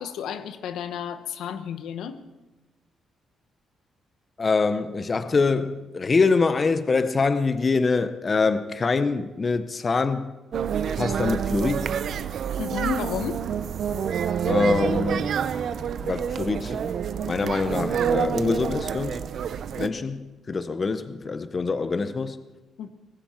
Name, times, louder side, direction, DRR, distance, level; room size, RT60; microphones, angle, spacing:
voice 1, 0.0-2.2 12.6-13.4 22.8-22.9, left 8 dB, 85° left, 11 dB, 1.0 m, -31 dB
voice 2, 4.4-10.4 11.0-12.0 14.4-15.3 16.0-16.9 17.2-19.3 19.8-22.4, left 4 dB, 30° left, 11 dB, 0.6 m, -24 dB
sound 1, 10.5-19.9, right 8 dB, 60° right, 0.6 m, -27 dB
19.0 x 16.0 x 4.4 m, 1.1 s
cardioid pair, 140°, 0 cm